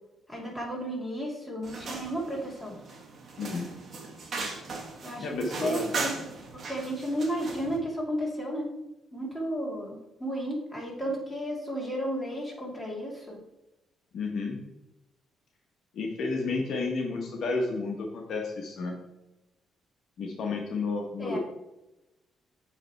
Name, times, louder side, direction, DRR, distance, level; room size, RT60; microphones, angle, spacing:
voice 1, 0.3-2.8 5.0-6.1 6.5-8.7 9.1-13.4 21.2-21.4, equal, 5° left, -3 dB, 2.2 m, -33 dB
sound 1, 1.6-7.8, right 3 dB, 50° right, 1.3 m, -38 dB
voice 2, 3.4-3.7 5.2-5.9 14.1-14.6 15.9-19.0 20.2-21.4, left 3 dB, 65° left, 2 dB, 1.0 m, -31 dB
7.9 x 3.3 x 4.5 m, 0.96 s
cardioid pair, 90°, 0 cm